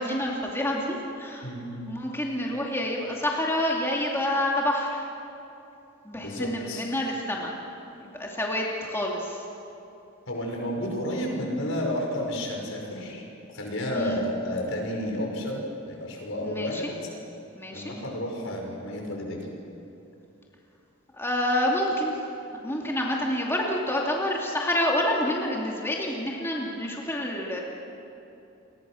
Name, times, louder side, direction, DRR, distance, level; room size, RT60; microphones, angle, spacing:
voice 1, 0.0-1.5 1.9-5.1 6.0-7.5 7.9-9.5 13.9-14.2 16.4-16.9 17.5-18.0 21.1-22.2 22.6-27.6, left 1 dB, 10° left, -2 dB, 2.6 m, -28 dB
voice 2, 1.4-1.8 6.2-6.8 10.3-16.9 17.7-19.4, left 1 dB, 75° left, 1 dB, 5.8 m, -31 dB
30.0 x 23.5 x 6.4 m, 2.9 s
head